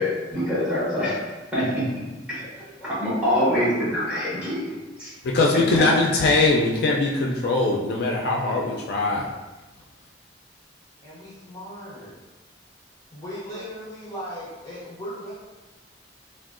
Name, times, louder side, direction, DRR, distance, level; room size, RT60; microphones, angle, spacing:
voice 1, 0.0-1.9 2.3-2.4 3.0-5.1, left 1 dB, 5° right, 1.3 m, -25 dB
voice 2, 5.2-9.3, left 2 dB, 60° left, 0.3 m, -21 dB
voice 3, 11.0-12.2 13.1-15.3, equal, 20° left, 0.6 m, -37 dB
3.5 x 2.3 x 2.4 m
head